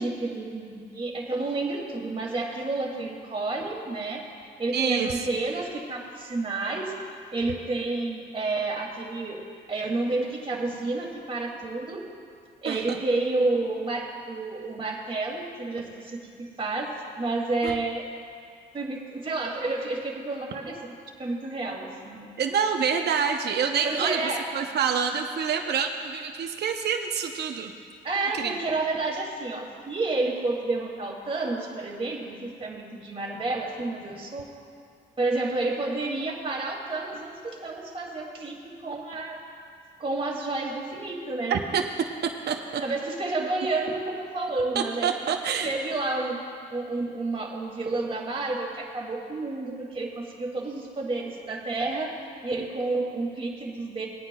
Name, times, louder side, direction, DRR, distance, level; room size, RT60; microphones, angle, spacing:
voice 1, 0.0-6.9 7.3-12.1 12.6-18.1 18.7-20.8 21.2-22.3 23.8-24.5 28.0-34.5 35.2-39.4 40.0-41.6 42.8-45.1 45.6-46.4 46.7-52.2 52.4-54.1, right 2 dB, 30° right, -2 dB, 2.5 m, -30 dB
voice 2, 4.7-5.2 12.6-12.8 17.6-17.7 22.4-24.2 24.5-27.7 28.3-28.5 41.5-41.8 42.2-42.8 44.7-45.7, right 7 dB, 55° right, 4 dB, 0.8 m, -27 dB
20.5 x 9.5 x 2.3 m, 2.2 s
cardioid pair, 90°, 20 cm